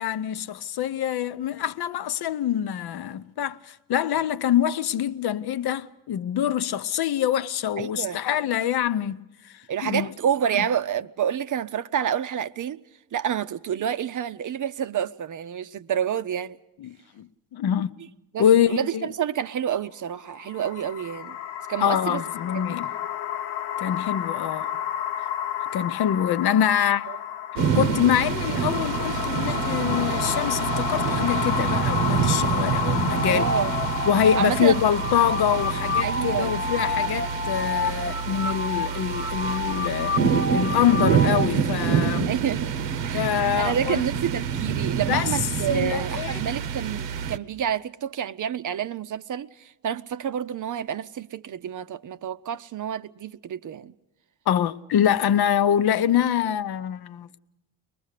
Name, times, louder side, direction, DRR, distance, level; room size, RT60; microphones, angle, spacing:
voice 1, 0.0-9.2 9.4-10.1 10.6-10.7 16.8-17.9 18.4-19.1 21.8-22.9 23.8-24.7 25.7-27.1 27.8-33.5 34.1-40.2 40.5-42.3 43.1-44.0 45.1-45.3 45.7-46.5 54.5-57.4, left 9 dB, 50° left, 0.8 m, -25 dB
voice 2, 7.8-8.2 9.7-12.8 13.1-16.6 18.3-21.4 21.7-22.2 22.5-22.7 27.1-27.2 33.3-33.7 34.4-34.8 36.0-36.6 42.3-43.2 43.6-53.9, right 9 dB, 40° right, 0.7 m, -29 dB
sound 1, 20.3-37.5, left 10 dB, 80° left, 0.9 m, -31 dB
sound 2, 27.6-47.4, right 7 dB, 65° right, 0.9 m, -27 dB
sound 3, 33.1-41.5, left 2 dB, 25° left, 0.9 m, -29 dB
23.5 x 20.5 x 6.6 m
hypercardioid pair, 55°, 47 cm